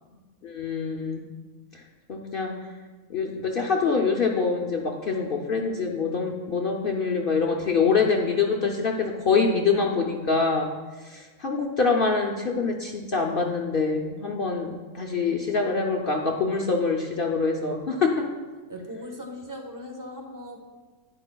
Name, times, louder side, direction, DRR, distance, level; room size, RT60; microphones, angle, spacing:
voice 1, 0.4-1.2 2.1-2.5 3.1-10.7 11.0-18.3, left 4 dB, 50° left, 1 dB, 0.7 m, -25 dB
voice 2, 18.7-20.6, left 1 dB, 15° right, 3 dB, 0.8 m, -38 dB
11.5 x 9.8 x 2.2 m, 1.4 s
omnidirectional pair, 1.5 m